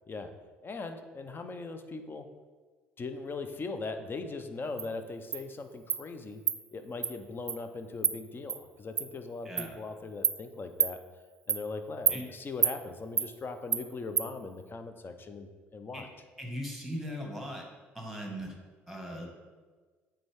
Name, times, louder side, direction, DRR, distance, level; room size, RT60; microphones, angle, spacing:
voice 1, 0.6-2.3 3.0-6.4 6.7-11.0 11.5-16.1, left 3 dB, 35° left, 8 dB, 0.7 m, -40 dB
Insect, 4.8-4.9 5.3-5.4 5.9-6.0 6.5-6.6 7.0-7.1 7.5-7.6 8.0-8.1 8.5-8.6 9.0-9.1 9.6-9.7 10.2-10.4 10.8-10.9 11.5-11.6 12.1-12.2 12.6-12.8 13.2-13.3 13.7-13.8 14.2-14.3, right 7 dB, 35° right, 0.4 m, -27 dB
voice 2, 16.4-17.7 17.9-18.5 18.9-19.3, equal, ahead, 1 dB, 1.7 m, -38 dB
8.9 x 3.4 x 3.5 m, 1.4 s
hypercardioid pair, 55°, 7 cm